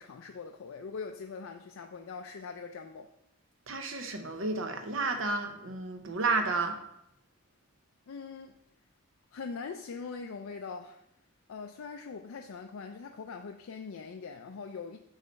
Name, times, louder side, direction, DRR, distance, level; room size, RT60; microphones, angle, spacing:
voice 1, 0.0-3.1 8.1-8.5 9.3-11.0 11.5-15.0, left 5 dB, 80° left, 5 dB, 0.4 m, -42 dB
voice 2, 3.7-6.7, right 3 dB, 70° right, 6 dB, 0.8 m, -31 dB
8.3 x 3.2 x 5.2 m, 0.80 s
head